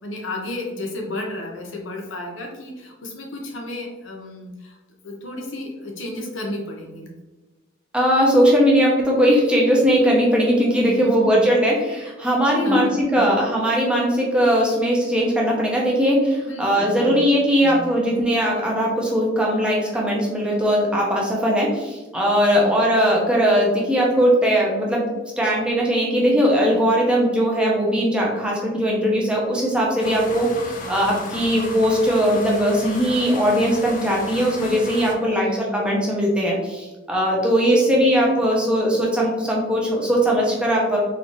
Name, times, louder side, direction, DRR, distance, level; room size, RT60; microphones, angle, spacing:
voice 1, 0.0-4.8 5.0-7.1 10.8-11.5 12.6-13.4 16.4-17.3 17.6-17.8 22.5-22.9 35.3-36.0, left 1 dB, 85° left, 0 dB, 0.9 m, -33 dB
voice 2, 7.9-25.0 25.4-41.0, equal, 5° right, -4 dB, 0.8 m, -19 dB
sound 1, 30.0-35.2, left 2 dB, 45° left, 0.5 m, -34 dB
4.2 x 2.7 x 3.1 m, 1.1 s
head